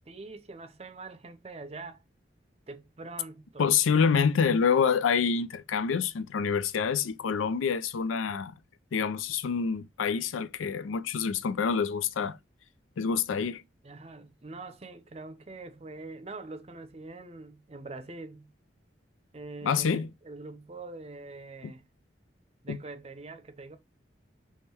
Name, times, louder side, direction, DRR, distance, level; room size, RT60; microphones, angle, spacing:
voice 1, 0.1-2.0 2.7-3.7 13.8-18.5 19.3-21.9 22.6-23.8, right 3 dB, 30° right, 0.6 m, -44 dB
voice 2, 3.6-8.5 8.9-12.4 13.0-13.6 19.6-20.1 22.7-22.8, left 6 dB, 90° left, 0.4 m, -27 dB
3.7 x 3.1 x 4.3 m
head